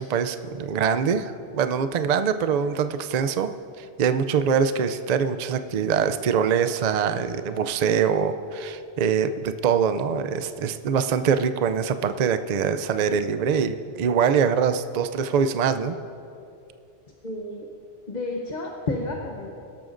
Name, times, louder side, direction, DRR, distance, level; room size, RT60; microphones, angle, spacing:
voice 1, 0.0-3.5 3.8-16.0, right 7 dB, 50° right, 9 dB, 0.5 m, -24 dB
voice 2, 17.2-17.7 18.1-19.5, left 2 dB, 45° left, 0 dB, 1.0 m, -31 dB
23.5 x 12.5 x 2.6 m, 2.7 s
omnidirectional pair, 1.2 m